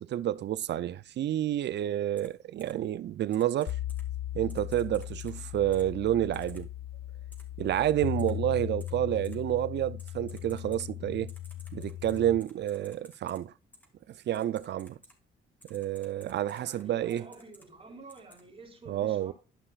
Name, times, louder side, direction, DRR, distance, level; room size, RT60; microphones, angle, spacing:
voice 1, 0.0-3.8 4.3-6.7 7.6-11.3 11.7-13.5 14.3-15.0 15.7-17.3 18.9-19.3, right 12 dB, 60° right, 0.6 m, -29 dB
Typing, 2.2-2.3 2.6-2.7 3.3-4.0 4.5-5.3 5.7-5.8 6.3-6.6 7.3-7.4 8.2-8.3 8.8-8.9 9.2-9.3 10.0-10.8 11.3-13.4 13.7-13.9 14.3-15.1 15.6-16.8 17.1-17.6 18.1-18.4, equal, 10° left, 2.1 m, -55 dB
sound 1, 3.7-12.4, left 13 dB, 65° left, 0.4 m, -38 dB
voice 2, 16.5-19.3, right 3 dB, 30° right, 3.2 m, -49 dB
12.0 x 5.5 x 2.5 m
cardioid pair, 90°, 20 cm